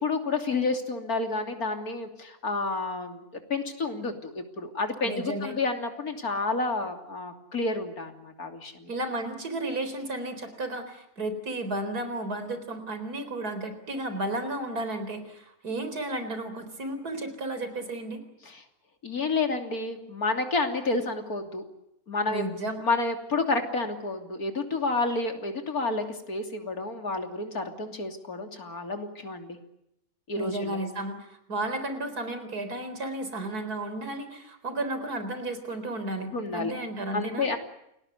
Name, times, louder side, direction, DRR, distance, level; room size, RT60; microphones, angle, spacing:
voice 1, 0.0-3.2 3.5-8.9 18.4-18.6 19.0-21.7 22.1-22.4 22.8-29.6 30.3-30.8 36.3-36.7 37.1-37.6, left 3 dB, 70° left, 5 dB, 3.5 m, -30 dB
voice 2, 5.0-5.5 8.9-18.2 22.3-22.8 30.4-37.5, right 2 dB, 80° right, 9 dB, 4.6 m, -33 dB
29.0 x 20.0 x 8.2 m, 0.82 s
omnidirectional pair, 1.6 m